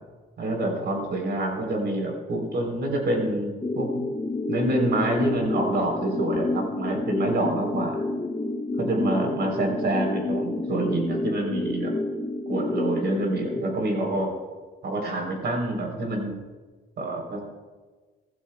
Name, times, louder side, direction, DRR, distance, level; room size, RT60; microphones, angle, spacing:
voice 1, 0.4-3.9 4.5-8.0 8.8-11.9 12.5-14.3 14.8-16.3 17.0-17.4, right 1 dB, 60° right, 2 dB, 3.9 m, -27 dB
sound 1, 3.6-13.6, left 2 dB, 20° left, 0.9 m, -29 dB
17.5 x 14.5 x 2.4 m, 1.4 s
cardioid pair, 90°, 20 cm